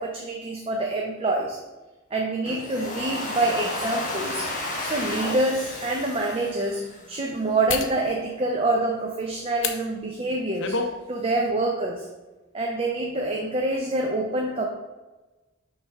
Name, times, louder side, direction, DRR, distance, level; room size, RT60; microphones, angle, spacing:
voice 1, 0.0-1.6 2.1-4.5 4.8-6.8 7.1-10.8 11.1-12.1 12.5-14.7, right 2 dB, 25° right, 0 dB, 0.6 m, -26 dB
Domestic sounds home sounds, 2.5-7.4, left 2 dB, 35° left, 1.4 m, -33 dB
sound 1, 4.9-5.0 5.6-5.7 7.7-8.0 9.6-9.8 10.3-10.9 11.3-11.5, left 5 dB, 55° left, 0.6 m, -28 dB
6.0 x 3.3 x 5.7 m, 1.2 s
head